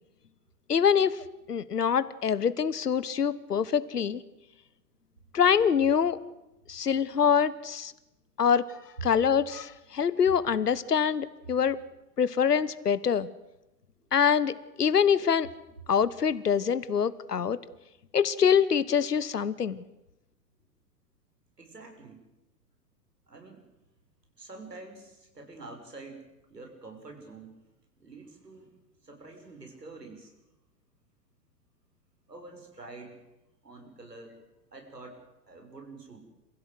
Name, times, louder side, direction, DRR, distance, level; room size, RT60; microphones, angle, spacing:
voice 1, 0.7-4.2 5.3-6.2 6.7-7.9 8.4-11.8 12.2-13.3 14.1-15.5 15.9-17.6 18.1-19.8, left 7 dB, 75° left, 17 dB, 1.1 m, -25 dB
voice 2, 21.6-22.2 23.3-23.6 24.4-26.2 26.5-27.5 28.0-28.7 29.0-30.3 32.3-33.2 33.6-34.4 34.7-35.2 35.5-36.2, right 3 dB, 80° right, 3 dB, 6.3 m, -47 dB
29.0 x 15.5 x 8.1 m, 0.96 s
figure-of-eight pair, 110°, 48 cm